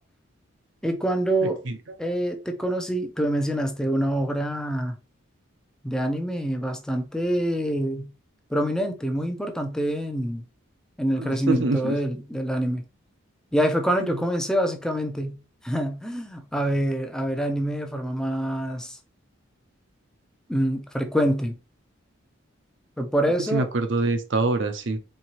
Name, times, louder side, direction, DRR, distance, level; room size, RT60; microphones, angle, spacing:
voice 1, 0.8-1.6 2.0-5.0 5.8-8.1 8.5-10.4 11.0-12.8 13.5-15.4 15.6-19.0 20.5-21.5 23.0-23.7, right 1 dB, 5° left, 0.6 m, -26 dB
voice 2, 1.7-2.0 11.2-12.0 14.0-14.2 23.5-25.0, right 3 dB, 60° right, 0.6 m, -25 dB
4.5 x 3.8 x 2.9 m
head